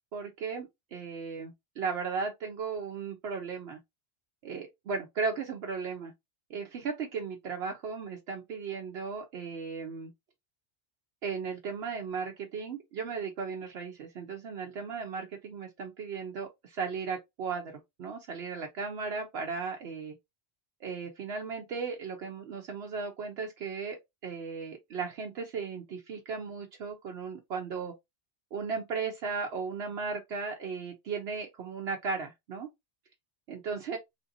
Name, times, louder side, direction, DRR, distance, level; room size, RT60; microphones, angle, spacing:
voice 1, 0.1-3.8 4.4-6.1 6.5-10.1 11.2-20.1 20.8-27.9 28.5-32.7 33.5-34.0, right 5 dB, 70° right, 0.9 m, -36 dB
3.4 x 2.6 x 2.6 m
omnidirectional pair, 1.2 m